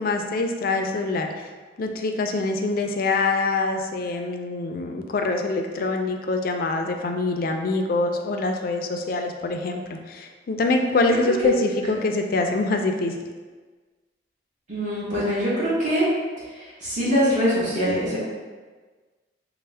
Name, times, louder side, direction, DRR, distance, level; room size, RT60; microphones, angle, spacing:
voice 1, 0.0-1.3 1.8-13.2, left 3 dB, 50° left, 4 dB, 0.3 m, -25 dB
voice 2, 14.7-16.1 16.8-18.2, equal, 45° right, -9 dB, 1.1 m, -23 dB
4.2 x 2.0 x 3.3 m, 1.4 s
head